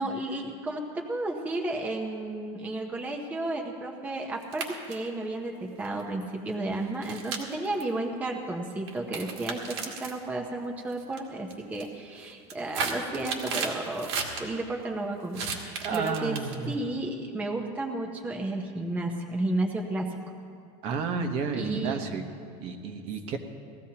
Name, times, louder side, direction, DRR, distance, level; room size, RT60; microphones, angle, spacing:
voice 1, 0.0-14.1 14.4-16.4 16.7-20.1 21.5-22.1, right 2 dB, 10° right, 1 dB, 0.8 m, -32 dB
sound 1, 4.4-5.1 5.8-6.0 7.0-7.8 8.9-10.1 10.9-11.2 11.5-11.9 12.3-14.4 15.3-16.7, right 5 dB, 85° right, 2.0 m, -33 dB
voice 2, 15.8-16.8 20.8-22.2 22.6-23.4, right 5 dB, 45° right, 5 dB, 1.0 m, -31 dB
19.5 x 14.5 x 2.9 m, 2.3 s
supercardioid pair, 155°, 14 cm